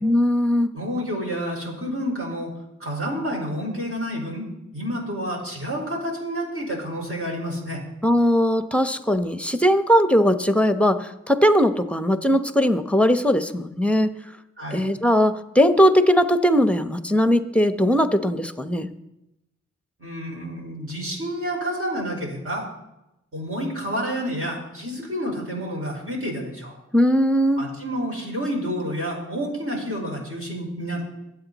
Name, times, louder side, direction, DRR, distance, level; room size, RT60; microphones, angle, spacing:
voice 1, 0.0-0.7 8.0-14.1 14.7-18.9 26.9-27.7, equal, 5° left, 10 dB, 0.9 m, -19 dB
voice 2, 0.7-2.5 2.8-4.5 4.7-7.8 14.6-14.8 20.0-22.7 23.3-26.7 27.6-31.1, equal, 50° right, -1 dB, 5.0 m, -29 dB
23.0 x 8.3 x 4.1 m, 0.89 s
cardioid pair, 55°, 29 cm